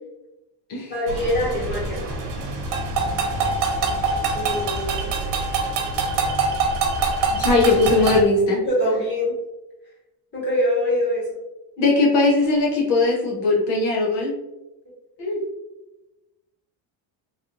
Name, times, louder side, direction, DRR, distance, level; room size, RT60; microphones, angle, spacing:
voice 1, 0.9-2.0 4.3-5.3 8.6-9.3 10.3-11.2, left 1 dB, 20° left, -5 dB, 1.3 m, -24 dB
sound 1, 1.1-8.2, right 3 dB, 70° right, 0.9 m, -24 dB
voice 2, 7.3-8.6 11.8-14.3 15.2-15.4, left 3 dB, 65° left, -3 dB, 1.0 m, -19 dB
3.3 x 2.9 x 2.5 m, 0.99 s
cardioid pair, 140°, 47 cm